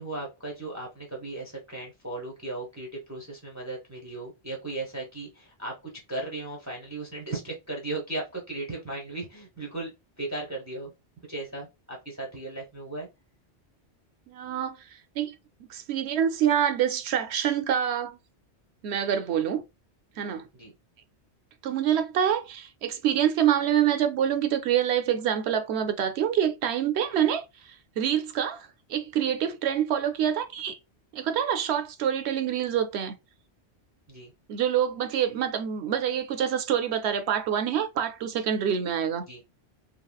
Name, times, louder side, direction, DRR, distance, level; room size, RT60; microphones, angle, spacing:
voice 1, 0.0-5.7 6.1-10.9 11.3-13.1 20.5-20.7 34.1-34.3 39.3-39.4, right 2 dB, 15° right, 0.7 m, -36 dB
voice 2, 14.3-14.8 15.2-15.3 15.7-18.2 18.8-19.6 20.2-20.5 21.6-27.4 28.0-30.8 31.1-33.1 34.5-39.2, right 9 dB, 75° right, 0.8 m, -26 dB
2.9 x 2.7 x 2.3 m
omnidirectional pair, 1.1 m